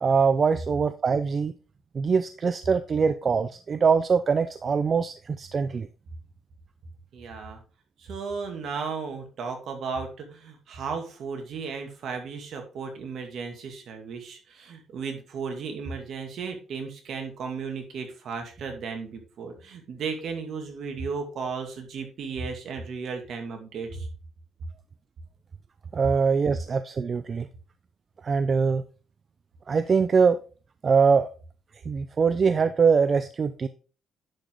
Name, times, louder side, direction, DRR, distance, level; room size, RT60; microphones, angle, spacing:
voice 1, 0.0-1.5 1.9-5.9 25.9-27.5 28.2-28.8 29.7-30.4 30.8-31.3 31.9-33.7, right 5 dB, 45° right, 12 dB, 0.5 m, -23 dB
voice 2, 7.1-7.6 8.0-24.1, right 5 dB, 70° right, 4 dB, 2.2 m, -35 dB
10.5 x 5.0 x 3.7 m, 0.36 s
cardioid pair, 90°, 0 cm